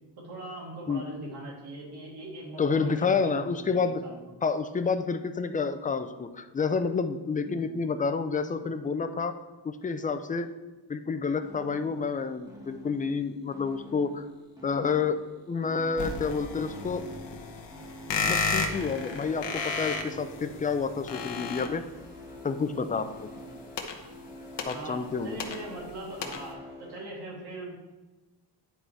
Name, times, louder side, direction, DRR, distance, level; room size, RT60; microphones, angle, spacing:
voice 1, 0.2-4.3 7.6-7.8 8.6-8.7 23.4-23.6 24.7-27.7, right 1 dB, 60° right, -3 dB, 2.4 m, -41 dB
voice 2, 2.6-4.0 4.4-9.4 9.6-10.5 10.9-14.3 14.6-15.2 15.5-17.0 18.3-21.8 22.4-23.3 24.7-25.4, left 5 dB, 20° left, 9 dB, 0.3 m, -29 dB
sound 1, 11.4-27.0, equal, 10° right, 1.3 m, -47 dB
sound 2, 16.0-22.2 23.4-25.9 26.2-26.5, left 4 dB, 70° left, 1.0 m, -33 dB
9.9 x 4.1 x 4.5 m, 1.2 s
wide cardioid pair, 150°, 43 cm